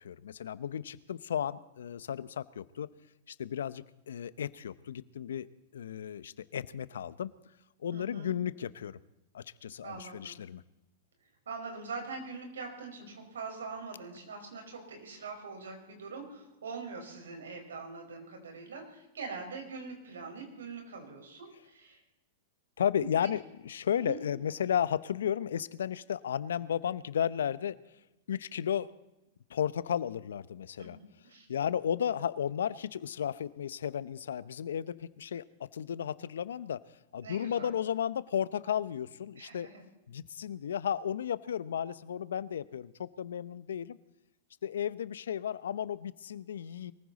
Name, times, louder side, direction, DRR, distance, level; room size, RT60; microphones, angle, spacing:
voice 1, 0.0-2.9 3.3-5.5 5.7-7.3 7.8-9.0 9.3-10.6 22.8-27.8 28.3-28.9 29.5-31.0 31.5-35.4 35.7-36.8 37.1-39.7 40.1-44.0 44.6-46.9, left 9 dB, 80° left, 17 dB, 0.7 m, -34 dB
voice 2, 7.9-8.3 9.8-10.3 11.5-22.0 23.0-23.1 23.9-24.2 30.8-30.9 31.3-31.5 37.2-37.7 39.4-39.8, right 4 dB, 85° right, 3 dB, 5.1 m, -43 dB
23.0 x 15.0 x 4.1 m, 0.94 s
hypercardioid pair, 115°, 0 cm